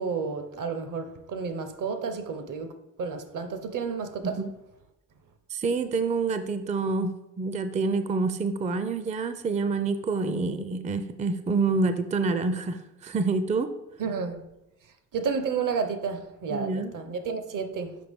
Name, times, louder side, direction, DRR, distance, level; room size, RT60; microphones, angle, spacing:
voice 1, 0.0-2.7 3.0-4.4 14.0-14.5 15.1-18.0, right 5 dB, 60° right, 0.8 m, -31 dB
voice 2, 5.5-13.7 16.5-16.9, right 4 dB, 20° right, 0.4 m, -27 dB
5.9 x 4.6 x 3.5 m
supercardioid pair, 65°, 35 cm